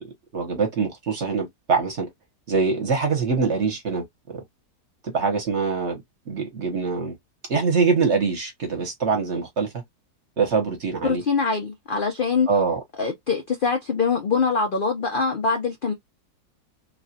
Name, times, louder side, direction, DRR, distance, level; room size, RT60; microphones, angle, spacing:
voice 1, 0.0-2.1 2.5-4.4 5.0-7.1 7.5-9.7 10.4-11.2 12.5-12.8, right 5 dB, 50° right, 1.2 m, -24 dB
voice 2, 11.0-12.5 13.0-15.9, left 5 dB, 60° left, 0.5 m, -23 dB
3.1 x 2.4 x 2.7 m
omnidirectional pair, 1.7 m